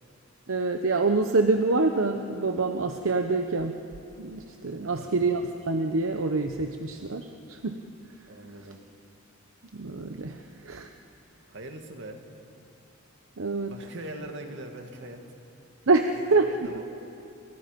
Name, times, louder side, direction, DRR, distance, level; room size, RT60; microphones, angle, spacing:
voice 1, 0.5-3.8 4.2-7.8 9.7-10.9 13.4-13.7 15.9-16.5, right 3 dB, 80° right, 6 dB, 0.9 m, -26 dB
voice 2, 4.7-5.3 8.3-8.8 11.5-12.2 13.7-15.2 16.3-16.8, right 1 dB, 65° right, 4 dB, 2.4 m, -42 dB
29.0 x 25.5 x 5.3 m, 2.8 s
head